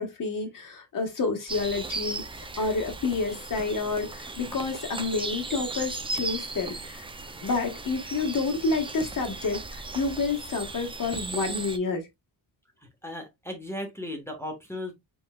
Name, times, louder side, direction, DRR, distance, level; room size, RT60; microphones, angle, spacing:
voice 1, 0.0-2.2 2.6-7.1 7.4-12.1, left 3 dB, 45° left, 1.2 m, -29 dB
sound 1, 1.5-11.8, right 3 dB, 15° right, 0.4 m, -37 dB
voice 2, 12.8-14.9, left 1 dB, 5° left, 1.2 m, -36 dB
5.6 x 4.3 x 2.2 m
wide cardioid pair, 155°, 44 cm